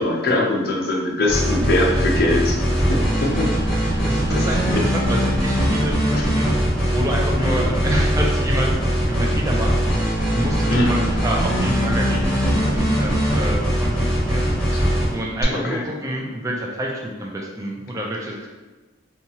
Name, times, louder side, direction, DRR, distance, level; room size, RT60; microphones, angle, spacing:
voice 1, 0.0-3.5 4.3-4.8 6.1-6.2 7.4-7.7 10.7-10.9 15.5-15.9, left 1 dB, 50° left, 0 dB, 0.5 m, -22 dB
sound 1, 1.3-15.4, equal, 5° left, 0.7 m, -21 dB
voice 2, 3.3-6.6 6.9-18.5, right 1 dB, 15° right, -1 dB, 0.3 m, -28 dB
2.8 x 2.3 x 2.7 m, 1.2 s
head